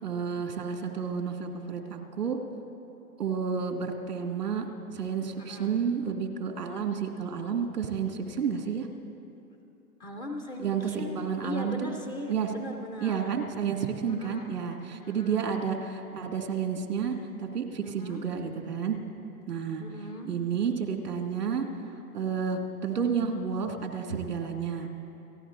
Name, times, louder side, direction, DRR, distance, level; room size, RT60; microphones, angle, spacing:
voice 1, 0.0-2.4 3.2-4.7 4.9-8.9 10.6-11.9 12.3-12.5 13.0-19.0 19.5-19.8 20.3-21.7 22.1-24.9, right 6 dB, 90° right, 2 dB, 2.0 m, -31 dB
voice 2, 5.4-5.8 10.0-13.2 14.0-14.7 15.0-15.5 17.8-18.2 19.8-20.3, left 1 dB, 10° left, 2 dB, 0.4 m, -39 dB
30.0 x 15.0 x 2.4 m, 2.9 s
hypercardioid pair, 115°, 46 cm